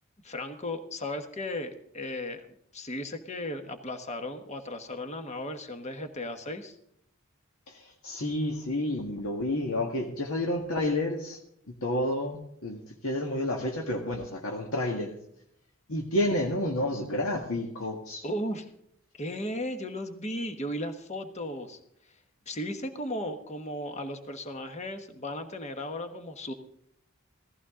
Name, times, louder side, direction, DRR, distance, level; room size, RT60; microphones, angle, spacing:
voice 1, 0.2-2.5 2.7-6.8 18.2-18.7 19.2-21.8 22.1-22.2 22.5-26.5, left 1 dB, 35° left, 7 dB, 1.2 m, -35 dB
voice 2, 7.7-11.4 11.8-15.2 15.9-18.2, left 1 dB, 85° left, 1 dB, 1.7 m, -30 dB
16.5 x 15.0 x 3.8 m, 0.72 s
head